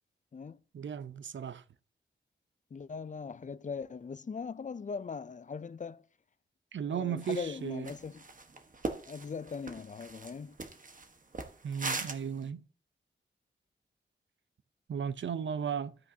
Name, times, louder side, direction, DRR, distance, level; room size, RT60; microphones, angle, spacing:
voice 1, 0.7-1.6 6.7-7.9 11.6-12.7 14.9-16.0, right 7 dB, 80° right, 0.6 m, -35 dB
voice 2, 2.7-6.0 6.9-8.2 9.1-10.6, left 5 dB, 40° left, 0.4 m, -40 dB
sound 1, 7.2-7.5 7.8-12.4, right 3 dB, 45° right, 1.2 m, -40 dB
12.5 x 8.3 x 2.8 m
wide cardioid pair, 95°, 19 cm